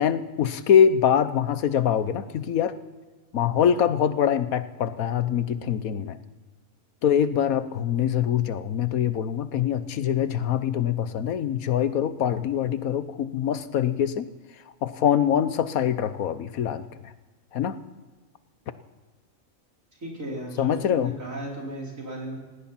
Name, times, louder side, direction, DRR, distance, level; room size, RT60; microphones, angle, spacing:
voice 1, 0.0-2.7 3.3-6.2 7.0-14.3 14.8-17.1 17.5-17.8 20.6-21.1, left 9 dB, 90° left, 13 dB, 1.4 m, -24 dB
voice 2, 20.0-22.4, right 1 dB, 70° right, -3 dB, 5.1 m, -35 dB
19.0 x 17.0 x 4.3 m, 1.3 s
omnidirectional pair, 1.4 m